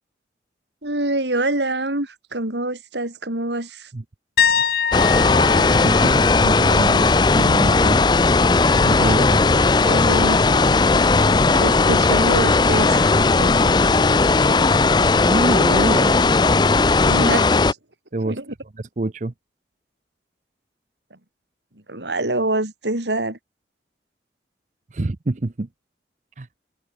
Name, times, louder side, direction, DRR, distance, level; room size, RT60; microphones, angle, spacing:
voice 1, 0.8-3.9 9.2-9.3 9.8-10.4 11.2-13.7 17.1-17.6 18.2-18.5 21.9-23.4, right 2 dB, 85° right, 4.4 m, -25 dB
sound 1, 4.4-8.1 8.4-8.8 11.7-11.8, left 6 dB, 55° left, 0.9 m, -25 dB
sound 2, 4.9-17.7, left 3 dB, 25° left, 0.4 m, -16 dB
voice 2, 5.6-8.0 8.8-9.4 15.3-16.4 18.1-18.4 18.8-19.3 24.9-25.7 26.4-26.5, right 2 dB, 45° right, 0.6 m, -26 dB
head